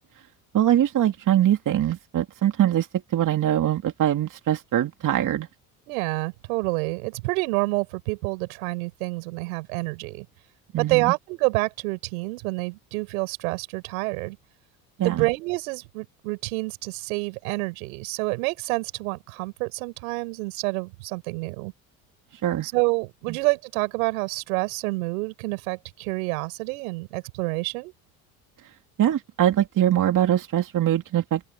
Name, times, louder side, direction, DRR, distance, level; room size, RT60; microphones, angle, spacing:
voice 1, 0.5-2.9 3.1-5.5 10.7-11.1 15.0-15.3 22.4-22.7 23.3-23.4 29.0-31.4, right 11 dB, 50° right, 2.5 m, -22 dB
voice 2, 5.9-10.3 10.8-14.4 15.0-21.7 22.6-27.9, right 26 dB, 85° right, 5.6 m, -28 dB
open air
supercardioid pair, 80°, 41 cm